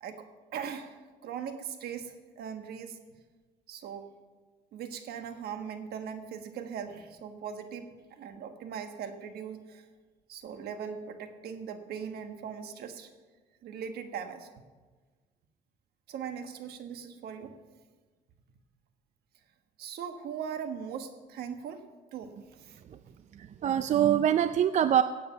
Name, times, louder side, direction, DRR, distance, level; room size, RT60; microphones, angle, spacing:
voice 1, 0.5-3.0 3.7-4.1 4.7-9.8 10.3-13.1 13.6-14.5 16.1-17.5 19.8-21.8 22.1-22.8, right 7 dB, 70° right, 7 dB, 1.4 m, -40 dB
voice 2, 23.3-25.0, right 10 dB, 45° right, 11 dB, 0.5 m, -24 dB
16.5 x 8.5 x 5.7 m, 1.4 s
cardioid pair, 110°, 17 cm